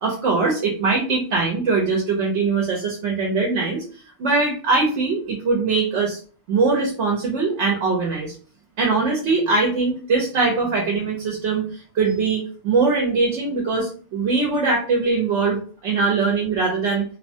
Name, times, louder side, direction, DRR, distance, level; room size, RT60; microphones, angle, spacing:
voice 1, 0.0-3.8 4.2-6.2 6.5-8.4 8.8-11.7 11.9-17.0, right 4 dB, 85° right, 0 dB, 1.0 m, -21 dB
2.9 x 2.1 x 2.6 m, 0.41 s
omnidirectional pair, 1.2 m